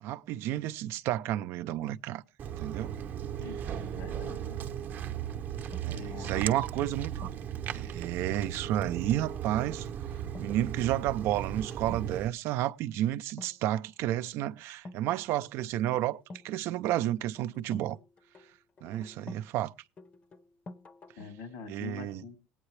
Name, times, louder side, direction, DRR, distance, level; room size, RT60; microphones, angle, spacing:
voice 1, 0.0-2.2 2.6-2.9 5.8-7.3 7.7-9.9 10.4-16.2 16.4-18.0 18.8-19.7 21.7-22.2, right 13 dB, 65° right, 0.5 m, -31 dB
Walk footsteps, 2.4-12.3, right 9 dB, 40° right, 0.8 m, -37 dB
voice 2, 3.4-4.6 5.9-6.4 6.8-6.9 21.2-22.4, left 5 dB, 80° left, 2.8 m, -44 dB
sound 1, 5.7-7.6 8.8-9.1 9.4-9.7 10.2-10.5 10.8-11.2 11.7-12.1 13.3-14.0 14.9-16.5 16.8-19.5 20.0-21.4, left 2 dB, 30° left, 0.8 m, -50 dB
19.5 x 9.0 x 3.2 m
cardioid pair, 130°, 5 cm